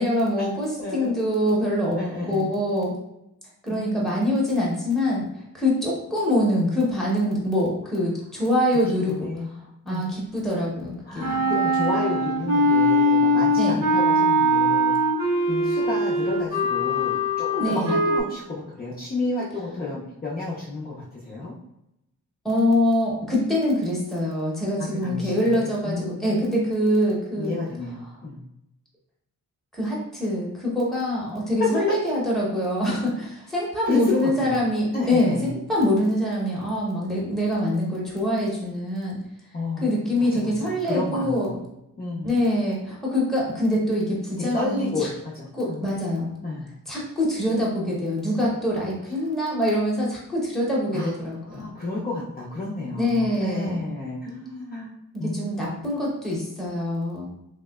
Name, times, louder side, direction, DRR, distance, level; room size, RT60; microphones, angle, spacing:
voice 1, 0.0-2.0 2.3-3.0 3.6-5.3 5.5-9.3 9.8-11.4 13.6-13.8 17.6-18.0 22.4-27.5 29.7-39.2 39.8-41.5 42.2-45.1 45.5-46.3 46.9-51.7 53.0-53.8 55.1-57.3, left 1 dB, ahead, -5 dB, 0.8 m, -24 dB
voice 2, 0.8-1.1 2.0-2.5 3.7-4.2 8.8-9.5 9.9-10.1 11.1-14.9 15.5-21.5 24.8-26.2 27.4-28.4 31.6-31.8 33.8-34.6 34.9-35.5 39.5-39.9 40.3-41.6 42.0-42.4 44.4-45.8 46.4-46.7 50.9-51.1 51.5-55.7, left 2 dB, 30° left, -7 dB, 0.5 m, -31 dB
Wind instrument woodwind instrument, 11.2-18.2, equal, 85° right, 1.2 m, -21 dB
3.1 x 2.8 x 2.3 m, 0.85 s
wide cardioid pair, 145°, 33 cm